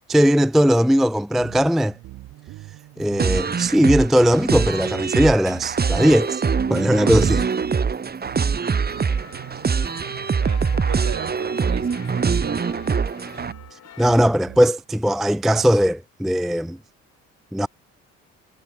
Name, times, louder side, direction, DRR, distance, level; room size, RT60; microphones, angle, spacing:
voice 1, 0.1-1.9 3.0-6.4 6.7-7.5 14.0-16.8 17.5-17.7, equal, ahead, 0.4 m, -18 dB
sound 1, 1.4-6.3 6.5-13.7 14.0-14.6, right 17 dB, 70° right, 1.6 m, -42 dB
sound 2, 3.2-13.5, right 5 dB, 30° right, 1.5 m, -23 dB
sound 3, 8.7-14.3, left 9 dB, 55° left, 3.0 m, -45 dB
voice 2, 10.4-13.5, right 9 dB, 55° right, 5.6 m, -38 dB
supercardioid pair, 70°, 32 cm